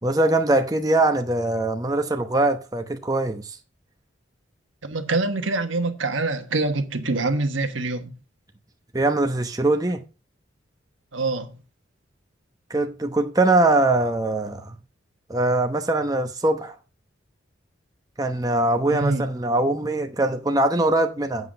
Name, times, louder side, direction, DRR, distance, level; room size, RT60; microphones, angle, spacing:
voice 1, 0.0-3.6 8.9-10.0 12.7-14.8 15.3-16.7 18.2-21.5, right 2 dB, 20° right, 0.9 m, -22 dB
voice 2, 4.8-8.1 11.1-11.5 18.9-19.2, right 3 dB, 85° right, 1.3 m, -25 dB
8.0 x 7.7 x 5.1 m
head